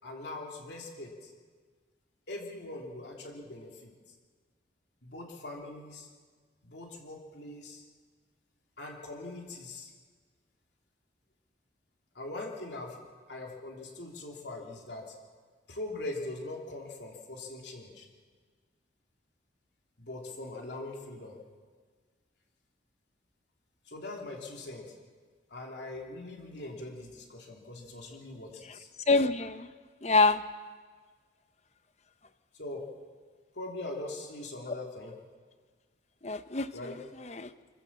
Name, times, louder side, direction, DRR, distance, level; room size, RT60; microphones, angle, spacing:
voice 1, 0.0-1.3 2.3-3.9 5.0-6.1 6.6-7.8 8.8-9.9 12.1-13.0 13.3-15.1 15.7-18.1 20.0-21.4 23.9-24.8 25.5-28.9 32.6-32.9 33.5-35.1 36.7-36.9, left 2 dB, 65° left, 0 dB, 3.2 m, -41 dB
voice 2, 29.1-29.7 30.0-30.4 36.2-36.9 37.2-37.5, left 3 dB, 35° left, 11 dB, 0.9 m, -26 dB
25.5 x 14.5 x 7.4 m, 1.5 s
head